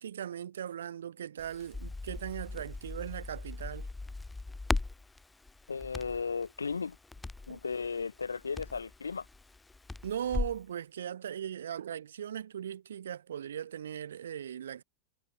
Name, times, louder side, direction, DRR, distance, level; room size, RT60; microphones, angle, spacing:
voice 1, 0.0-3.9 7.5-7.6 10.0-14.8, right 9 dB, 65° right, 5.2 m, -38 dB
Crackle, 1.4-10.6, left 3 dB, 10° left, 2.5 m, -39 dB
voice 2, 5.7-7.0 7.5-9.2, left 5 dB, 75° left, 4.8 m, -35 dB
figure-of-eight pair, 90°, 0 cm